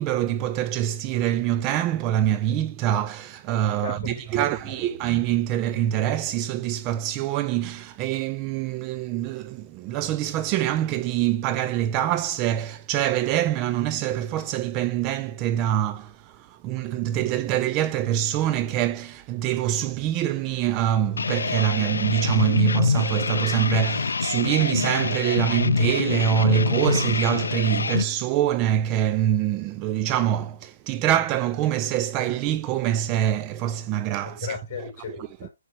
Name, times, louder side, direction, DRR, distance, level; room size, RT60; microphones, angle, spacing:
voice 1, 0.0-34.5, right 11 dB, 20° right, 0.3 m, -25 dB
voice 2, 3.7-4.9 34.2-35.5, left 7 dB, 35° left, 3.8 m, -37 dB
sound 1, 21.2-28.0, left 4 dB, 85° left, 0.3 m, -25 dB
9.4 x 4.7 x 2.9 m
hypercardioid pair, 155°, 0 cm